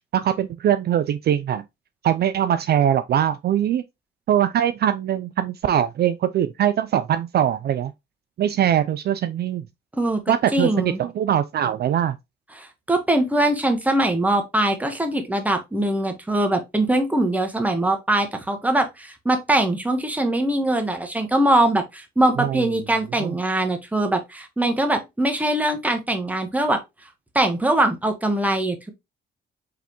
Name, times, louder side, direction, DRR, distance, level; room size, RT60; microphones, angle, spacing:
voice 1, 0.1-1.6 2.0-3.8 4.3-7.9 8.4-9.6 10.3-12.2 22.4-22.6 23.2-23.3, right 10 dB, 55° right, 0.4 m, -22 dB
voice 2, 9.9-11.0 12.5-26.8 27.3-28.9, right 1 dB, 5° right, 1.1 m, -22 dB
4.9 x 3.3 x 2.9 m
cardioid pair, 90°, 20 cm